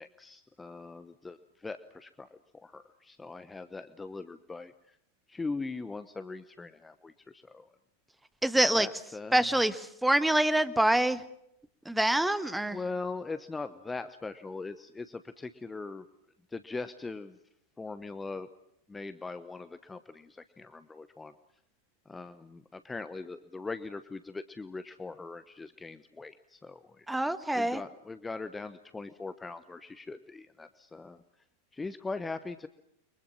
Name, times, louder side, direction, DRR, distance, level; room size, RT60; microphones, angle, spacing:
voice 1, 0.0-5.0 5.3-7.7 8.7-9.5 12.7-16.0 16.5-17.4 17.8-18.5 18.9-21.3 22.1-27.3 27.5-31.2 31.7-32.7, left 3 dB, 10° left, 12 dB, 1.0 m, -41 dB
voice 2, 8.4-8.9 9.3-11.2 11.8-12.8 27.1-27.8, right 1 dB, 5° right, 13 dB, 1.4 m, -26 dB
30.0 x 24.0 x 6.2 m, 0.77 s
figure-of-eight pair, 90°, 0 cm